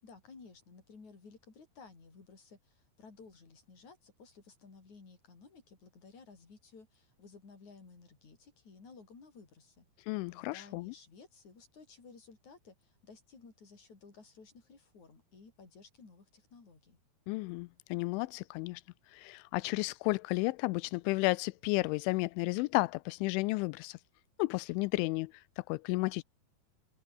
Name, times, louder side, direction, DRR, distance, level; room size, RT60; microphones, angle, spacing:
voice 1, 0.0-9.9 10.3-17.0, left 4 dB, 40° left, 6.9 m, -56 dB
voice 2, 10.1-10.9 17.3-18.8 19.1-24.0 24.4-26.2, left 24 dB, 90° left, 3.0 m, -33 dB
omnidirectional pair, 5.3 m